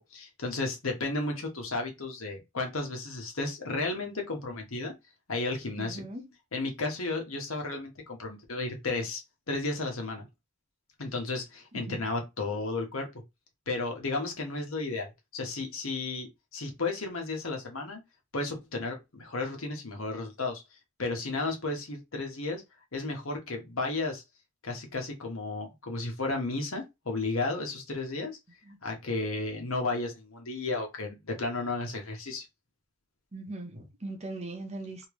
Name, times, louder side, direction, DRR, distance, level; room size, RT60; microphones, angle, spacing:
voice 1, 0.1-4.9 5.3-6.1 6.5-10.2 11.0-13.1 13.7-16.3 16.5-18.0 18.3-20.6 21.0-22.6 22.9-24.2 24.6-28.4 28.8-32.4, left 3 dB, 70° left, 1.2 m, -33 dB
voice 2, 5.8-6.3 11.7-12.0 28.7-28.8 33.3-35.1, right 2 dB, 30° right, 0.8 m, -40 dB
3.3 x 2.9 x 3.1 m
head